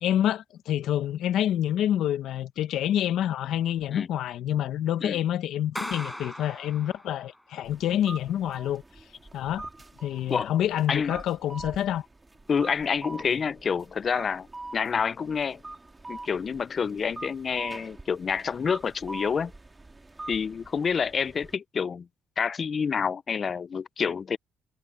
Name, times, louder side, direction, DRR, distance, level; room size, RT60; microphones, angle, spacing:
voice 1, 0.0-8.8 9.3-9.6 10.0-12.0, left 11 dB, 80° left, 1.2 m, -27 dB
Clapping, 5.8-7.4, left 1 dB, 5° left, 5.6 m, -38 dB
sound 1, 7.6-21.6, right 2 dB, 20° right, 2.5 m, -44 dB
voice 2, 12.5-14.5 14.7-15.6 16.1-19.5 20.3-22.1 22.4-24.4, left 6 dB, 45° left, 0.5 m, -28 dB
cardioid pair, 90°, 0 cm